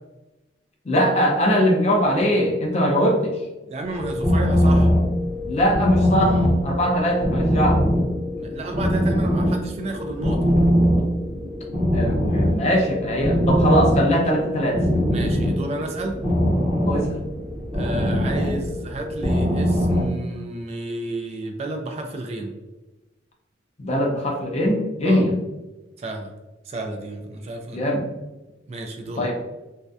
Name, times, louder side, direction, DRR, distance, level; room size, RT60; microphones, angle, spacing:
voice 1, 0.9-3.4 5.5-7.8 11.9-14.8 16.9-17.2 23.8-25.3 27.7-28.0 29.2-29.4, equal, 40° left, 1 dB, 0.5 m, -21 dB
voice 2, 3.7-4.9 8.3-10.4 15.1-16.2 17.7-22.5 25.0-25.3 26.0-26.3 26.7-27.8 28.7-29.3, right 2 dB, 35° right, 4 dB, 0.3 m, -31 dB
sound 1, 3.8-20.1, equal, 20° right, 0.7 m, -22 dB
2.6 x 2.1 x 2.3 m, 1.1 s
head